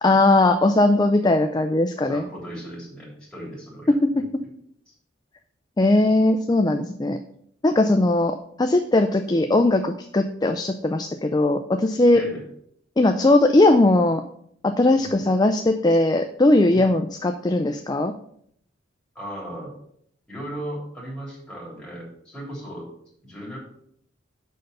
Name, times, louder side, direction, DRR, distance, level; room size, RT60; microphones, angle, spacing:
voice 1, 0.0-2.2 3.9-4.1 5.8-7.2 7.6-12.2 13.0-14.2 14.6-18.1, left 2 dB, 20° left, 6 dB, 0.4 m, -19 dB
voice 2, 2.0-4.5 4.9-5.0 12.1-12.4 15.0-15.2 16.7-17.0 19.1-19.8 20.3-22.9 23.2-23.6, right 1 dB, 5° left, -4 dB, 3.2 m, -37 dB
6.5 x 5.3 x 6.6 m, 0.67 s
head